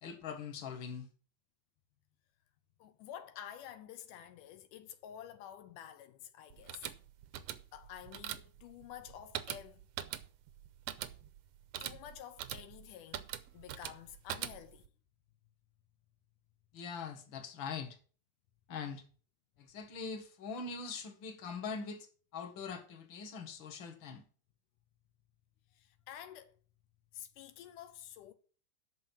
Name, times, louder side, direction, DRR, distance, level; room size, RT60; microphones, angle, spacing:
voice 1, 0.0-1.1 16.7-18.0 18.7-19.0 19.6-22.1 22.3-24.2, left 5 dB, 45° left, 2.1 m, -42 dB
voice 2, 2.8-6.9 7.7-9.9 11.8-14.9 25.7-26.6 27.1-28.3, left 10 dB, 85° left, 2.4 m, -50 dB
sound 1, 6.5-14.9, right 11 dB, 75° right, 1.5 m, -44 dB
9.1 x 6.4 x 7.3 m
omnidirectional pair, 3.6 m